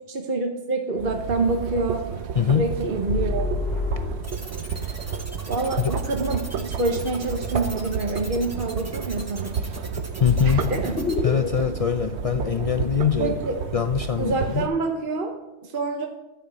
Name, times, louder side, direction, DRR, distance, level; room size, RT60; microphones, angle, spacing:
voice 1, 0.1-2.0 2.5-3.5 5.5-9.6 10.4-10.9 13.2-13.6 14.2-16.1, right 3 dB, 55° right, 3 dB, 1.1 m, -27 dB
sound 1, 1.0-14.7, right 6 dB, 85° right, 1.0 m, -31 dB
voice 2, 2.4-2.7 4.8-5.2 10.2-10.6 11.2-13.3 13.7-14.7, left 8 dB, 55° left, 7 dB, 0.4 m, -23 dB
sound 2, 3.1-4.6 10.2-13.3, left 3 dB, 70° left, 1.3 m, -28 dB
sound 3, 4.2-11.1, right 1 dB, 15° right, 1.1 m, -41 dB
12.5 x 5.8 x 7.4 m, 1.0 s
omnidirectional pair, 1.1 m